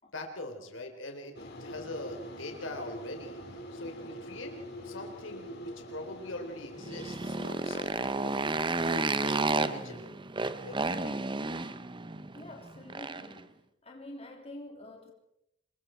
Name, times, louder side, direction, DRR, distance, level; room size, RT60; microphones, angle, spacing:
voice 1, 0.1-3.4 3.7-4.5 4.8-10.2 10.6-11.2, left 2 dB, 85° left, 3.8 m, -43 dB
sound 1, 1.3-10.0, equal, 55° left, 4.6 m, -45 dB
Motorcycle, 6.8-13.4, right 3 dB, 25° right, 0.9 m, -32 dB
voice 2, 12.3-13.5 13.8-15.1, left 1 dB, 30° left, 3.3 m, -47 dB
27.5 x 21.5 x 4.5 m
head